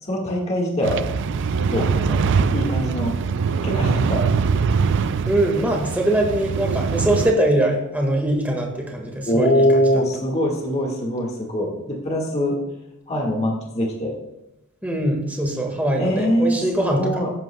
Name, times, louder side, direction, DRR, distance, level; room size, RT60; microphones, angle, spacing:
voice 1, 0.0-1.0 1.6-2.2 2.5-3.1 3.6-4.3 9.2-12.6 13.1-14.1 16.0-17.3, equal, 30° left, -1 dB, 1.7 m, -22 dB
sound 1, 0.8-7.3, right 5 dB, 55° right, 0.4 m, -22 dB
voice 2, 5.2-9.8 14.8-17.2, right 1 dB, 5° right, 0 dB, 1.7 m, -22 dB
14.5 x 11.5 x 2.2 m, 0.95 s
head